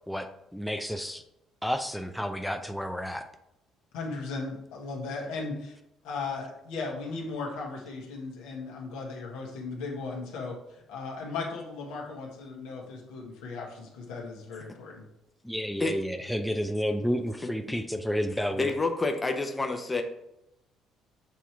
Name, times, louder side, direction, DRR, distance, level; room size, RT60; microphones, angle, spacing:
voice 1, 0.1-1.2 1.6-3.2 15.4-18.7, equal, ahead, 6 dB, 0.5 m, -31 dB
voice 2, 3.9-5.7 6.0-15.1, left 3 dB, 85° left, -1 dB, 1.5 m, -37 dB
voice 3, 18.6-20.0, left 3 dB, 25° left, 4 dB, 0.8 m, -28 dB
7.2 x 2.9 x 4.6 m, 0.83 s
supercardioid pair, 70°, 0 cm